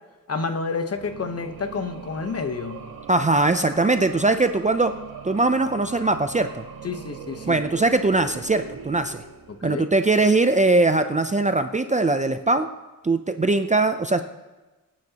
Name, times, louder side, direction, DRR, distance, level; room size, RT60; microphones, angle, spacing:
voice 1, 0.3-2.8 6.8-7.6 9.6-9.9, left 4 dB, 45° left, 7 dB, 1.0 m, -29 dB
sound 1, 0.8-9.9, right 6 dB, 90° right, 1.6 m, -40 dB
voice 2, 3.1-4.9 5.2-6.6 7.5-9.2 9.6-12.7 13.0-14.2, right 2 dB, 20° right, 8 dB, 0.5 m, -21 dB
24.0 x 9.7 x 2.9 m, 1.2 s
wide cardioid pair, 135°, 34 cm